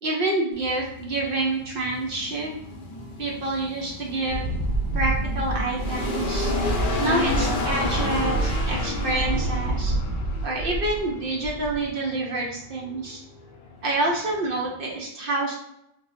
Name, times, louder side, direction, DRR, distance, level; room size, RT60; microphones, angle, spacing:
voice 1, 0.0-2.5 3.2-4.4 4.9-6.5 7.0-9.9 10.4-13.2 13.8-15.5, right 2 dB, 65° right, -2 dB, 0.5 m, -27 dB
sound 1, 0.5-15.0, left 2 dB, 70° left, 0.4 m, -33 dB
Wind, 4.3-11.1 11.4-11.9, right 2 dB, 80° right, 1.3 m, -27 dB
4.6 x 2.0 x 2.5 m, 0.78 s
omnidirectional pair, 1.5 m